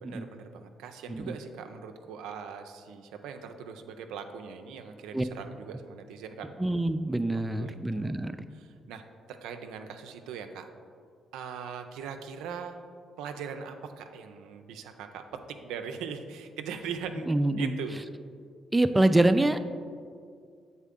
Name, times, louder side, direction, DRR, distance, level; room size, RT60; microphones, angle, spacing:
voice 1, 0.0-6.5 7.6-8.2 8.5-9.0 9.3-10.7 11.3-12.8 13.2-17.3 17.6-18.0, right 7 dB, 85° right, 6 dB, 0.4 m, -40 dB
voice 2, 6.6-8.4 17.3-17.7 18.7-19.6, right 1 dB, 15° right, 9 dB, 0.3 m, -25 dB
7.2 x 4.1 x 3.6 m, 2.2 s
supercardioid pair, 60°, 0 cm